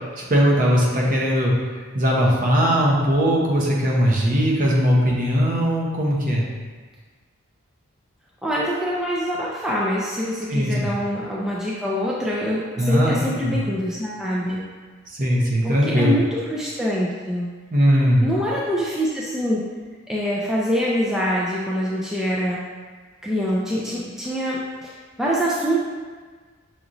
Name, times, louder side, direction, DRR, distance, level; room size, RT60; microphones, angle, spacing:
voice 1, 0.2-1.5 1.9-6.5 10.5-10.9 12.8-13.6 15.2-16.1 17.7-18.3, equal, 45° right, -4 dB, 0.8 m, -19 dB
voice 2, 8.4-14.6 15.6-17.5 18.2-19.6 20.1-22.6 23.2-24.9 25.2-25.8, equal, 5° right, -6 dB, 0.4 m, -24 dB
6.0 x 2.9 x 2.5 m, 1.5 s
head